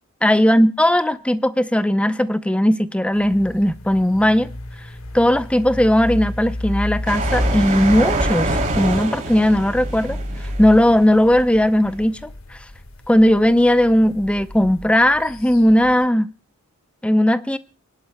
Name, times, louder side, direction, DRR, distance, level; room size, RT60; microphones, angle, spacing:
voice 1, 0.2-4.5 5.1-10.2 10.6-12.6 13.1-16.3 17.0-17.6, left 1 dB, 5° left, 0.6 m, -17 dB
sound 1, 3.1-16.1, left 1 dB, 70° left, 1.6 m, -32 dB
sound 2, 7.1-11.5, right 2 dB, 35° right, 2.9 m, -25 dB
29.5 x 11.0 x 2.2 m
head